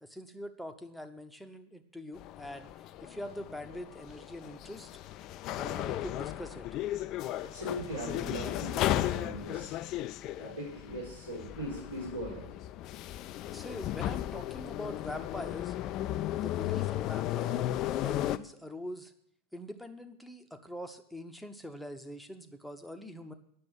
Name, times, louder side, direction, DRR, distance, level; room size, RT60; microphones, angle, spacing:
voice 1, 0.0-2.7 3.0-4.9 5.6-6.7 13.5-15.8 16.3-17.7 18.0-19.1 19.5-23.3, left 1 dB, ahead, 7 dB, 0.8 m, -43 dB
sound 1, 2.2-18.4, left 13 dB, 35° left, 0.4 m, -35 dB
voice 2, 7.4-9.8 10.4-12.5, equal, 85° right, -5 dB, 4.1 m, -40 dB
9.7 x 6.7 x 8.8 m, 0.72 s
figure-of-eight pair, 90°, 0 cm